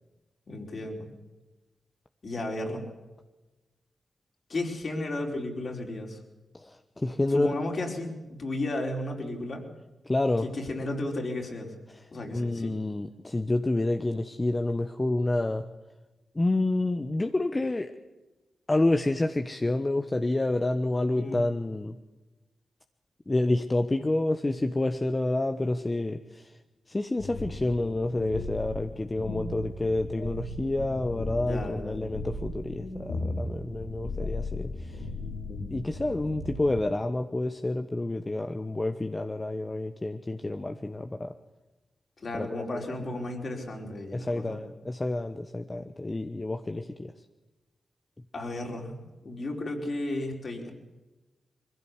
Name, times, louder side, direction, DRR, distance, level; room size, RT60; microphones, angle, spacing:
voice 1, 0.5-1.1 2.2-2.8 4.5-6.2 7.3-9.7 10.4-11.7 12.1-12.7 21.1-21.4 31.3-32.0 42.2-44.6 48.3-48.9 49.2-50.7, left 2 dB, 55° left, 1 dB, 4.7 m, -34 dB
voice 2, 6.5-7.6 10.0-10.5 12.3-15.7 16.3-17.9 18.7-22.0 23.3-26.6 26.9-35.1 35.7-41.3 42.3-42.5 42.7-42.8 44.1-47.1, left 2 dB, 30° left, 6 dB, 1.2 m, -28 dB
sound 1, 27.2-36.8, left 2 dB, 85° left, 5.2 m, -36 dB
22.0 x 15.5 x 8.3 m, 1.1 s
supercardioid pair, 40°, 0 cm